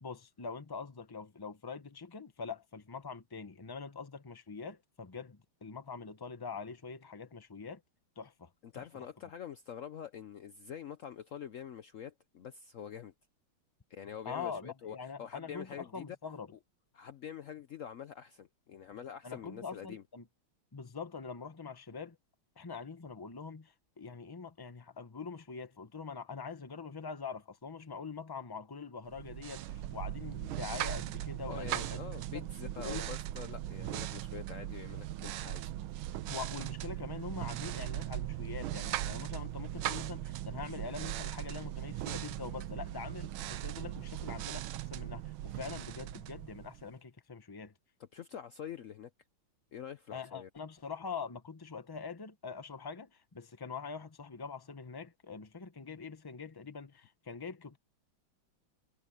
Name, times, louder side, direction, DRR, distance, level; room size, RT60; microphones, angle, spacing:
voice 1, 0.0-7.8 8.2-9.1 14.2-16.5 19.2-20.3 20.7-22.2 22.6-32.0 32.3-32.4 32.7-33.1 36.3-44.6 44.9-47.7 50.1-57.8, left 5 dB, 20° left, 0.7 m, -44 dB
voice 2, 8.6-13.1 13.9-16.1 16.9-20.0 31.5-35.7 48.0-49.1 49.7-50.5, left 8 dB, 85° left, 0.7 m, -46 dB
sound 1, 29.1-47.0, right 14 dB, 80° right, 1.5 m, -39 dB
omnidirectional pair, 2.3 m